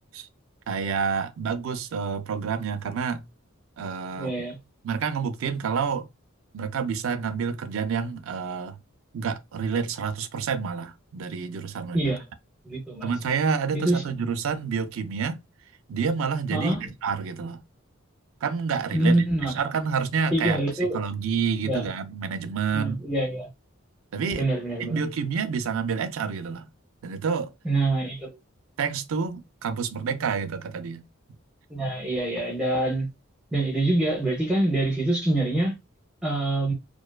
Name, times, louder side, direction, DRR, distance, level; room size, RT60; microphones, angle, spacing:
voice 1, 0.7-3.2 3.8-4.4 4.8-6.1 6.5-8.8 9.1-12.0 13.0-15.4 15.9-17.6 18.4-19.2 19.5-20.6 20.9-23.0 24.1-24.4 24.8-26.7 27.0-27.5 28.8-31.0, right 6 dB, 75° right, 0.4 m, -28 dB
voice 2, 4.2-4.6 11.9-12.2 12.7-13.1 13.7-14.0 16.5-16.8 18.9-19.5 20.3-21.0 21.6-21.9 22.7-23.5 24.4-25.0 27.6-28.3 31.7-33.1 33.5-35.8 36.2-36.7, right 1 dB, 5° right, 0.5 m, -25 dB
2.5 x 2.2 x 2.2 m
head